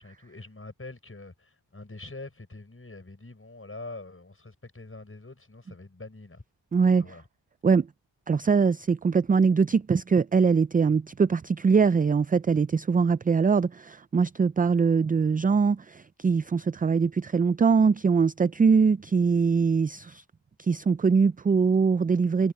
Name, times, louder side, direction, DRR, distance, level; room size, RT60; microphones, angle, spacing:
voice 1, 0.0-6.4 7.0-7.3, left 2 dB, 30° left, 5.6 m, -44 dB
voice 2, 6.7-7.1 7.6-7.9 8.3-20.2 20.6-22.5, right 5 dB, 20° right, 0.3 m, -22 dB
cardioid pair, 50°, 44 cm